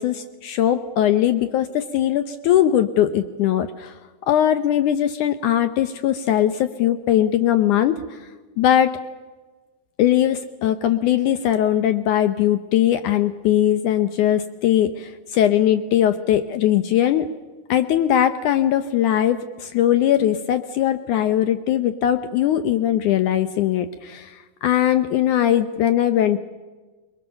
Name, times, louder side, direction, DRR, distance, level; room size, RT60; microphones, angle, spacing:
voice 1, 0.0-3.9 4.3-8.2 8.6-9.0 10.0-17.3 17.7-26.4, left 11 dB, 85° left, 10 dB, 1.7 m, -20 dB
28.5 x 21.0 x 6.9 m, 1.3 s
omnidirectional pair, 4.8 m